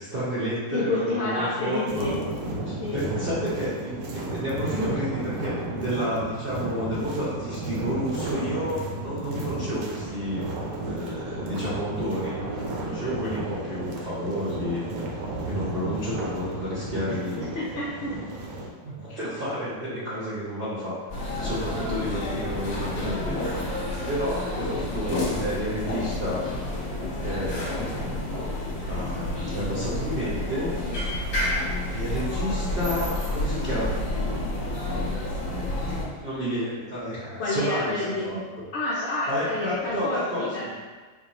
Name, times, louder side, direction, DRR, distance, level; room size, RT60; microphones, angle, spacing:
voice 1, 0.0-2.1 2.6-10.4 10.8-14.8 15.4-17.4 18.1-18.2 18.8-20.9 21.4-23.4 24.1-26.5 27.2-28.2 28.8-30.7 31.9-34.0 36.2-38.4 39.3-40.7, equal, 45° right, -10 dB, 0.8 m, -31 dB
voice 2, 0.7-2.2 2.8-3.0 17.1-18.4 37.4-38.4 38.7-40.7, left 2 dB, 70° left, -7 dB, 0.6 m, -29 dB
sound 1, 1.9-18.7, right 2 dB, 80° right, 1.2 m, -33 dB
sound 2, 21.1-36.0, left 1 dB, 45° left, 0.9 m, -29 dB
4.3 x 2.5 x 2.9 m, 1.4 s
omnidirectional pair, 1.9 m